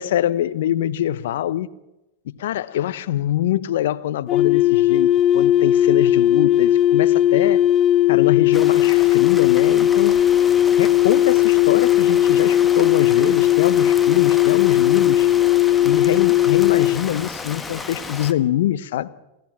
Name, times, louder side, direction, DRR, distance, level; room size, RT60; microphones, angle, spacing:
voice 1, 0.0-1.7 2.4-7.6 8.1-10.2 10.8-15.3 15.8-19.1, left 12 dB, 65° left, 1.0 m, -24 dB
sound 1, 4.3-17.0, left 12 dB, 35° left, 0.7 m, -17 dB
Rain, 8.5-18.3, left 4 dB, 15° left, 1.8 m, -33 dB
29.0 x 14.5 x 7.4 m
hypercardioid pair, 95°, 0 cm